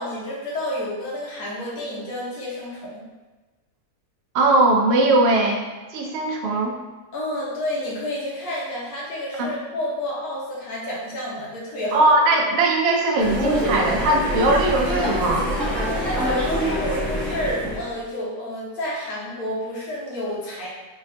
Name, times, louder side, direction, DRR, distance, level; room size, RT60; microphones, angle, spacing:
voice 1, 0.0-3.0 7.1-12.0 16.0-20.7, left 1 dB, 70° left, -6 dB, 1.4 m, -30 dB
voice 2, 4.3-5.6 5.9-6.8 9.4-9.5 11.9-15.5, right 2 dB, 80° right, 1 dB, 0.5 m, -19 dB
sound 1, 13.2-17.9, equal, ahead, 0.6 m, -25 dB
3.4 x 2.5 x 3.2 m, 1.2 s
omnidirectional pair, 1.7 m